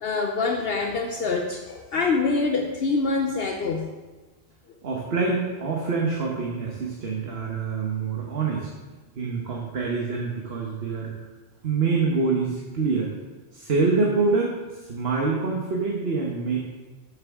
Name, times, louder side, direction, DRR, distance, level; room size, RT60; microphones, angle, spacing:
voice 1, 0.0-3.9, left 4 dB, 65° left, 2 dB, 1.0 m, -25 dB
voice 2, 4.8-8.7 9.1-11.1 11.6-13.1 13.5-16.6, right 4 dB, 65° right, -2 dB, 1.4 m, -26 dB
12.0 x 7.4 x 3.6 m, 1.2 s
omnidirectional pair, 1.1 m